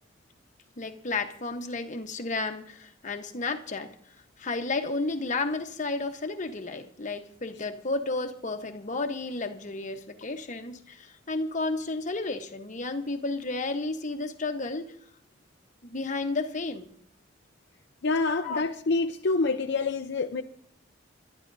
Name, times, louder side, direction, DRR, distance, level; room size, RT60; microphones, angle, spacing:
voice 1, 0.8-3.9 4.4-14.9 15.9-16.9 18.4-18.6, left 3 dB, 40° left, 1.1 m, -32 dB
voice 2, 18.0-20.4, left 3 dB, 65° left, 0.6 m, -27 dB
28.0 x 12.5 x 2.7 m
head